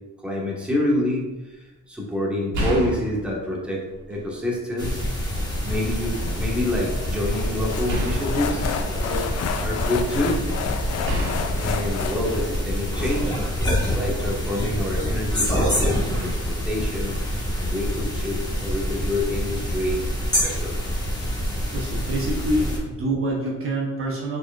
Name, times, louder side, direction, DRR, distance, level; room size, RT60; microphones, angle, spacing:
voice 1, 0.2-1.2 1.9-5.0 5.6-9.3 9.6-10.4 11.5-13.3 13.9-17.2 17.6-20.0 20.4-20.7, left 1 dB, 5° right, -4 dB, 1.3 m, -27 dB
sound 1, 2.5-4.4 4.8-5.8 7.9-9.8 11.0-12.9 14.0-14.2, equal, 75° right, 1.6 m, -31 dB
sound 2, 4.8-22.8, equal, 15° left, 1.4 m, -26 dB
sound 3, 5.7-12.6, left 7 dB, 60° left, 0.4 m, -32 dB
voice 2, 21.7-24.4, right 1 dB, 45° right, -2 dB, 0.9 m, -26 dB
4.8 x 4.5 x 2.4 m, 1.0 s
cardioid pair, 90°, 30 cm